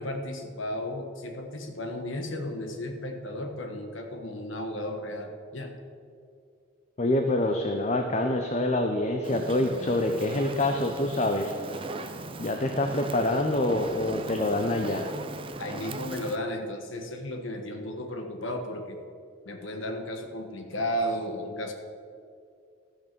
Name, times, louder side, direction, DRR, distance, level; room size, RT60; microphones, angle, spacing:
voice 1, 0.0-5.7 15.6-19.0 19.4-21.7, left 1 dB, 80° left, 4 dB, 1.4 m, -34 dB
voice 2, 7.0-11.5 12.4-15.1, left 1 dB, 35° left, 5 dB, 0.6 m, -26 dB
Fire, 9.2-16.4, right 2 dB, 25° right, 0.6 m, -39 dB
13.0 x 6.2 x 6.8 m, 2.4 s
head